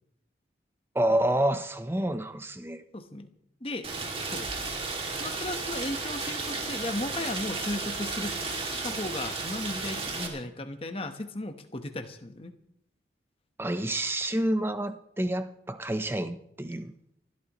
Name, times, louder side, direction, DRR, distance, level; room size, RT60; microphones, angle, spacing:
voice 1, 0.9-2.8 13.6-16.9, right 1 dB, 15° right, 10 dB, 0.7 m, -28 dB
voice 2, 2.9-3.3 3.6-3.9 4.3-4.5 5.1-8.3 8.7-12.5, left 2 dB, 30° left, 7 dB, 1.1 m, -35 dB
Rain, 3.8-10.3, right 3 dB, 30° right, 2.4 m, -34 dB
30.0 x 12.0 x 3.1 m, 0.76 s
head